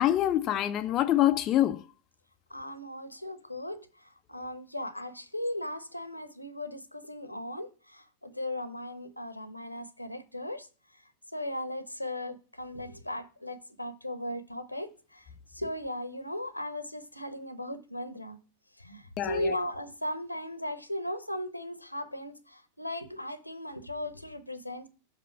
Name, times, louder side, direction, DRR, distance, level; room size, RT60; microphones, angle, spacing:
voice 1, 0.0-1.8 19.2-19.5, left 12 dB, 35° left, 0.5 m, -25 dB
voice 2, 2.5-3.9 4.3-10.7 11.3-15.2 15.5-18.4 18.8-24.9, left 1 dB, 85° left, 0.9 m, -37 dB
5.2 x 5.1 x 5.6 m
figure-of-eight pair, 90°, 0 cm